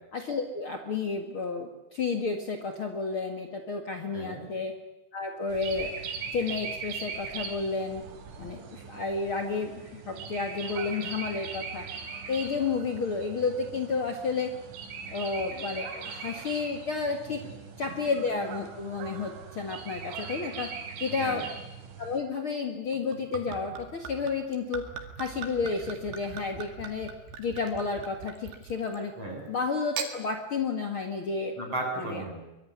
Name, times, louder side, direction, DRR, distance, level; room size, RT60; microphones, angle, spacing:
voice 1, 0.1-4.8 5.1-5.9 6.3-8.0 8.4-11.8 12.3-14.5 15.1-17.4 17.8-20.7 21.0-21.5 22.0-24.9 25.2-27.1 27.4-29.1 29.5-31.5 32.0-32.2, left 4 dB, 80° left, 4 dB, 1.2 m, -31 dB
voice 2, 4.1-4.5 17.9-18.0 21.1-21.4 29.2-29.5 31.6-32.4, right 2 dB, 30° right, 2 dB, 8.9 m, -35 dB
sound 1, 5.5-22.2, right 5 dB, 85° right, 5.5 m, -40 dB
Gurgling / Chink clink / Liquid, 22.9-29.1 29.8-30.2, right 6 dB, 60° right, 4.0 m, -41 dB
24.0 x 21.5 x 9.7 m, 0.95 s
omnidirectional pair, 5.7 m